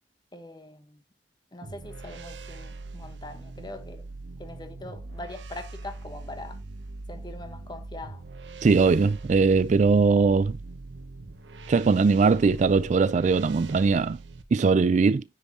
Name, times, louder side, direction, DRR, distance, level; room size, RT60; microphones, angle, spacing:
voice 1, 0.3-1.0 1.5-4.0 4.4-6.6 7.1-8.2, left 2 dB, 25° left, 1.1 m, -42 dB
sound 1, 1.6-14.4, right 2 dB, 85° right, 0.8 m, -42 dB
voice 2, 8.6-10.6 11.7-14.2 14.5-15.2, right 4 dB, 40° right, 0.3 m, -20 dB
10.0 x 5.3 x 2.8 m
head